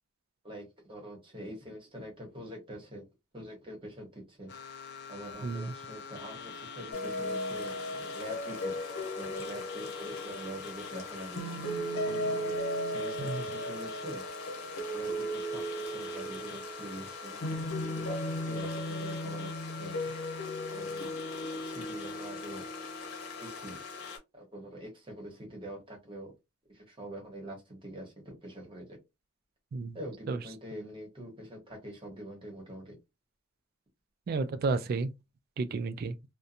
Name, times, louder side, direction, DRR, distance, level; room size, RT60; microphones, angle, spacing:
voice 1, 0.4-3.0 3.3-4.5 5.1-8.8 9.2-11.4 11.9-12.6 12.8-14.2 14.9-19.5 19.8-20.1 20.7-21.1 21.4-22.6 23.4-23.8 24.3-26.3 26.7-29.0 29.9-33.0, right 1 dB, 25° right, 1.0 m, -45 dB
sound 1, 4.5-24.2, left 5 dB, 50° left, 0.4 m, -45 dB
voice 2, 5.4-5.8 13.2-13.4 29.7-30.0 30.3-30.5 34.3-35.1 35.6-36.2, right 3 dB, 45° right, 0.3 m, -32 dB
sound 2, 6.9-24.2, equal, 90° left, 0.8 m, -36 dB
2.6 x 2.2 x 2.5 m
head